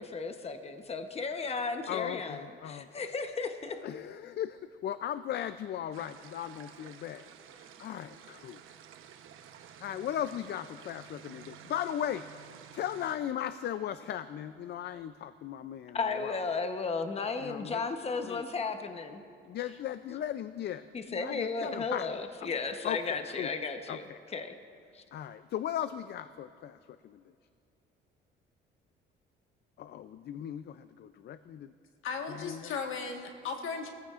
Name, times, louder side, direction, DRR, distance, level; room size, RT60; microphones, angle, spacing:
voice 1, 0.0-3.8 15.9-19.2 20.9-24.5 24.9-25.0, left 4 dB, 30° left, 7 dB, 0.9 m, -34 dB
voice 2, 1.9-3.1 3.8-8.6 9.8-12.3 12.7-16.5 17.4-17.8 18.2-18.4 19.4-22.1 22.4-22.5 22.8-23.5 23.9-24.2 25.1-27.2 29.8-31.7 32.3-32.7, left 10 dB, 55° left, 12 dB, 0.4 m, -37 dB
sound 1, 5.9-13.2, right 9 dB, 75° right, 0.9 m, -52 dB
voice 3, 32.0-33.9, left 5 dB, 75° left, 3 dB, 1.5 m, -36 dB
22.0 x 15.0 x 2.5 m, 2.5 s
cardioid pair, 100°, 21 cm